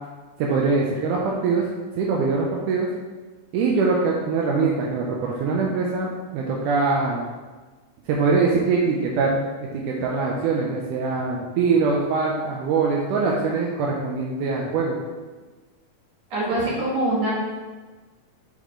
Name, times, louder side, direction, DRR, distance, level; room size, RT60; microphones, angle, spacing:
voice 1, 0.4-1.6 2.0-2.9 3.5-6.1 6.3-7.2 8.1-9.4 9.7-15.0, right 4 dB, 90° right, -2 dB, 2.2 m, -23 dB
voice 2, 16.3-17.3, right 1 dB, 70° right, -6 dB, 3.2 m, -23 dB
7.4 x 3.7 x 3.7 m, 1.3 s
omnidirectional pair, 3.5 m